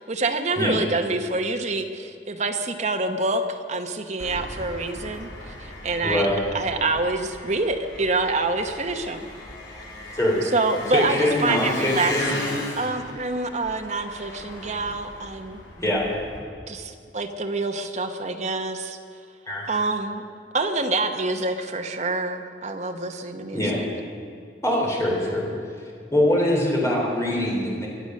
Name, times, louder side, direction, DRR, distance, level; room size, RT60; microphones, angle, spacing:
voice 1, 0.0-6.3 6.5-9.2 10.5-15.6 16.7-19.0 19.7-20.2 20.5-23.9, right 3 dB, 40° right, 5 dB, 1.0 m, -27 dB
Engine, 4.2-16.4, left 1 dB, 75° left, 3.4 m, -37 dB
voice 2, 6.0-6.4 10.1-10.4 10.9-12.5 15.8-16.1 19.5-19.7 23.5-23.8 24.6-25.5 26.1-27.9, left 1 dB, 15° left, -3 dB, 3.6 m, -23 dB
23.5 x 8.1 x 6.5 m, 2.3 s
head